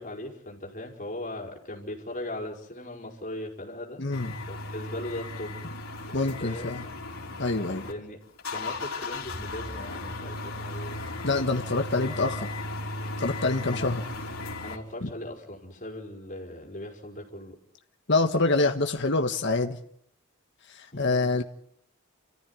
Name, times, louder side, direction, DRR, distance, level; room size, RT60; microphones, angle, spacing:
voice 1, 0.0-4.0 4.5-5.6 6.1-6.7 7.8-8.2 8.5-11.0 13.7-13.9 14.6-17.6 20.9-21.3, left 1 dB, 35° left, 0 dB, 5.0 m, -39 dB
voice 2, 4.0-4.3 6.1-6.8 7.4-7.8 11.2-12.5 13.2-14.0 15.0-15.1 18.1-19.8 20.7-21.4, left 3 dB, 50° left, 5 dB, 1.4 m, -26 dB
sound 1, 4.1-7.9 8.2-14.8, left 2 dB, 70° left, 4.0 m, -36 dB
29.5 x 14.5 x 9.8 m, 0.74 s
head